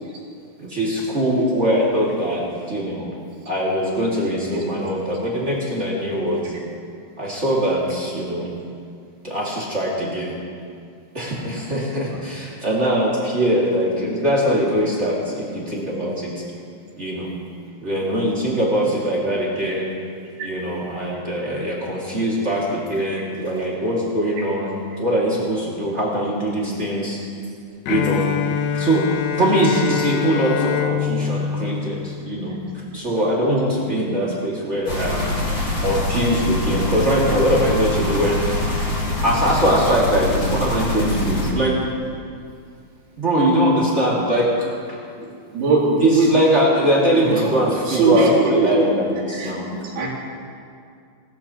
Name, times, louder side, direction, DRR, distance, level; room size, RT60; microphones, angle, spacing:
voice 1, 0.6-3.0 3.4-6.5 7.2-8.5 9.2-10.3 11.1-16.3 17.0-17.3 17.8-19.9 20.4-27.2 27.9-28.2 28.7-29.0 29.4-32.6 32.9-35.3 35.8-38.4 39.2-41.8 43.2-45.0 46.0-49.6, right 1 dB, 35° right, -5 dB, 1.1 m, -21 dB
Bowed string instrument, 27.9-32.7, left 8 dB, 85° left, 2.0 m, -25 dB
sound 1, 34.8-41.5, left 2 dB, 30° left, 2.0 m, -24 dB
voice 2, 45.2-46.4 47.1-47.6 47.9-48.9 49.3-50.1, right 3 dB, 75° right, -5 dB, 4.6 m, -20 dB
19.5 x 14.0 x 2.9 m, 2.3 s
omnidirectional pair, 4.7 m